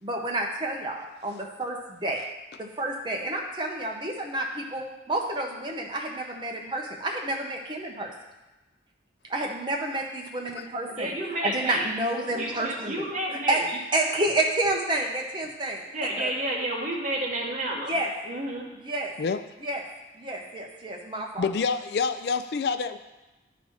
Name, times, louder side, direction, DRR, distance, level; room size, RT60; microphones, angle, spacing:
voice 1, 0.0-2.2 2.6-8.1 9.3-11.1 11.4-15.8 16.2-16.3 17.9-18.1 18.8-19.1 19.6-19.8 20.1-21.5, right 1 dB, 25° right, 0 dB, 1.0 m, -29 dB
voice 2, 10.9-11.9 12.4-13.6 15.9-17.9 18.2-18.7, right 1 dB, 40° right, -2 dB, 1.5 m, -30 dB
voice 3, 21.4-23.0, left 5 dB, 60° left, 11 dB, 0.3 m, -27 dB
11.0 x 4.0 x 4.7 m, 1.1 s
head